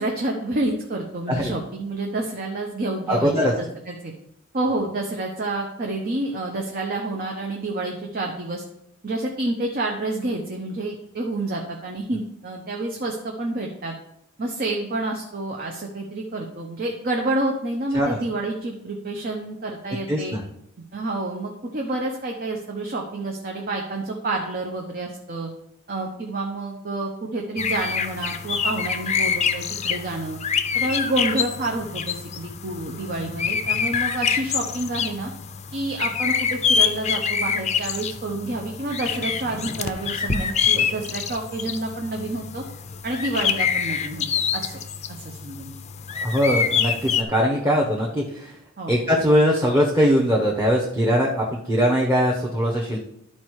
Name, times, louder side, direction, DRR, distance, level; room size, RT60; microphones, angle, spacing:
voice 1, 0.0-4.1 4.5-8.6 9.0-13.9 14.4-20.3 20.9-25.5 25.9-30.4 30.7-35.3 35.7-42.6 43.0-44.3 44.5-44.8 45.1-45.8 48.8-48.9, right 2 dB, 50° right, 1 dB, 0.9 m, -29 dB
voice 2, 3.1-3.5 17.9-18.2 20.1-20.4 46.1-48.6 48.9-53.0, equal, 15° right, -3 dB, 1.0 m, -21 dB
sound 1, 27.6-47.2, left 6 dB, 35° left, 0.5 m, -26 dB
11.5 x 4.3 x 4.8 m, 0.77 s
head